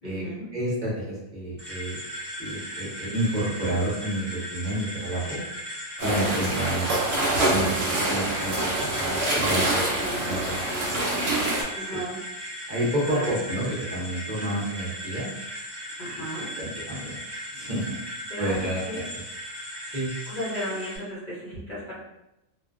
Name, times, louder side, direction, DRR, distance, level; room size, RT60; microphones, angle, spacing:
voice 1, 0.0-0.5 6.0-6.4 9.2-11.0 11.7-12.2 13.0-13.4 16.0-16.5 18.3-19.1 20.3-21.9, equal, 45° left, -8 dB, 0.7 m, -35 dB
voice 2, 0.5-2.0 2.4-5.4 6.0-6.9 7.5-9.9 10.2-10.7 10.9-11.0 11.9-12.0 12.7-15.3 16.5-17.2 17.5-18.0 18.4-19.0 19.9-20.1, right 1 dB, 45° right, -6 dB, 0.7 m, -29 dB
sound 1, 1.6-21.0, equal, 15° right, 1.0 m, -37 dB
sound 2, 6.0-11.6, right 1 dB, 65° right, 1.0 m, -26 dB
2.5 x 2.1 x 2.4 m, 0.87 s
omnidirectional pair, 1.5 m